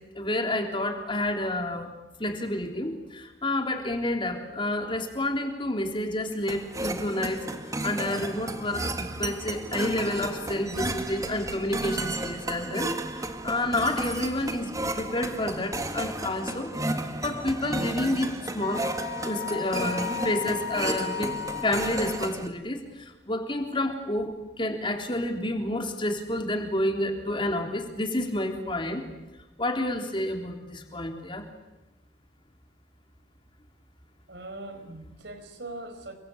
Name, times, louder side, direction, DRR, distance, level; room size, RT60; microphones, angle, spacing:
voice 1, 0.2-1.9 2.2-16.7 17.2-18.8 19.2-21.3 21.6-29.0 29.6-31.5, left 1 dB, 25° left, 4 dB, 3.6 m, -29 dB
sound 1, 6.5-22.5, right 2 dB, 20° right, 1.8 m, -33 dB
Wind instrument woodwind instrument, 18.6-22.5, left 9 dB, 50° left, 1.4 m, -35 dB
voice 2, 34.3-36.1, right 2 dB, 65° right, 8 dB, 4.8 m, -41 dB
29.0 x 23.5 x 8.8 m, 1.0 s
head